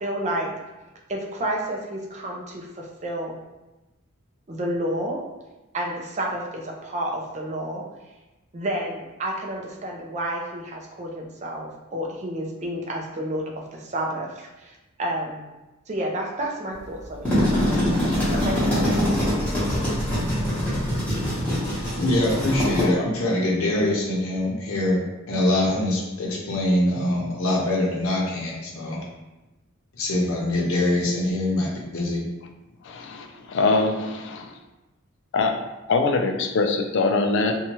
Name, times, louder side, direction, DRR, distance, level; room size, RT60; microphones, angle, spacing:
voice 1, 0.0-0.5 1.1-3.4 4.5-5.2 5.7-7.8 8.5-15.5 15.9-19.7, right 1 dB, 35° right, 0 dB, 0.4 m, -30 dB
sound 1, 17.0-22.8, equal, 5° left, 0.9 m, -23 dB
voice 2, 22.0-25.0 25.3-29.0 29.9-32.2, left 1 dB, 85° left, -4 dB, 0.8 m, -23 dB
voice 3, 32.8-34.5 35.3-35.6 35.9-37.6, left 3 dB, 60° left, 4 dB, 0.3 m, -23 dB
2.7 x 2.3 x 2.9 m, 1.1 s
head